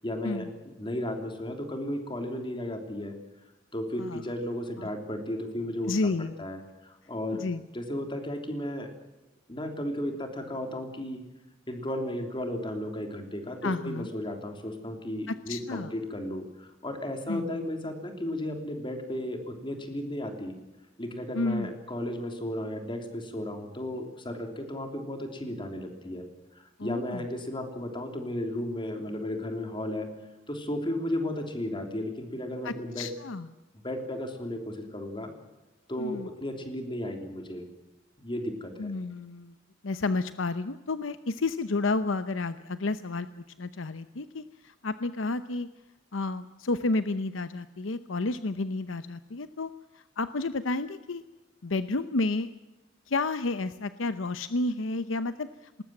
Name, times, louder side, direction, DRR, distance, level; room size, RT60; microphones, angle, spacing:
voice 1, 0.0-3.1 3.7-6.1 6.4-7.5 7.7-8.9 9.5-11.2 11.7-20.5 21.0-26.2 26.5-30.1 30.5-33.1 33.8-35.3 35.9-37.6 38.2-38.9, left 1 dB, 25° left, 5 dB, 3.2 m, -34 dB
voice 2, 5.8-6.3 7.4-7.6 13.6-14.1 15.3-15.9 17.3-17.7 21.3-21.7 26.8-27.3 32.6-33.5 36.0-36.3 38.8-39.5 39.8-45.7 46.1-51.2 51.6-52.5 53.1-55.8, left 3 dB, 85° left, 12 dB, 0.8 m, -31 dB
19.5 x 19.5 x 7.8 m, 1.1 s
head